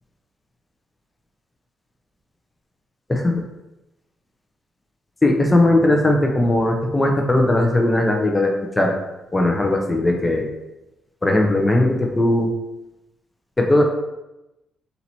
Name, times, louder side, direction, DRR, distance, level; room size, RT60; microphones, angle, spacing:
voice 1, 3.1-3.4 5.2-9.0 9.3-10.5 11.2-12.5 13.6-13.9, left 1 dB, 15° left, 2 dB, 0.7 m, -18 dB
4.1 x 2.8 x 4.4 m, 0.96 s
cardioid pair, 90°, 0 cm